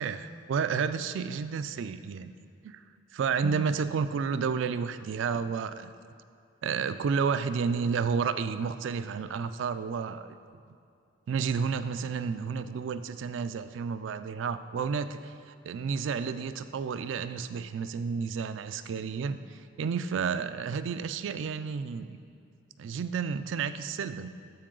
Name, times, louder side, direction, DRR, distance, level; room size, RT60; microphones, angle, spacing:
voice 1, 0.0-2.3 2.6-2.8 3.1-5.9 6.6-10.4 11.3-15.3 15.6-22.2 22.8-24.3, right 6 dB, 75° right, 11 dB, 0.3 m, -31 dB
12.0 x 4.6 x 3.8 m, 2.5 s
head